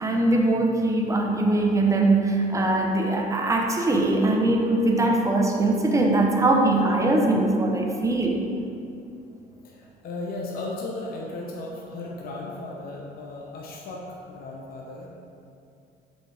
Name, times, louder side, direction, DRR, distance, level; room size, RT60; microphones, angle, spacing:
voice 1, 0.0-8.5, right 2 dB, 20° right, 1 dB, 0.8 m, -21 dB
voice 2, 9.6-15.1, left 2 dB, 60° left, -2 dB, 0.9 m, -36 dB
7.5 x 5.3 x 3.5 m, 2.5 s
cardioid pair, 110°, 17 cm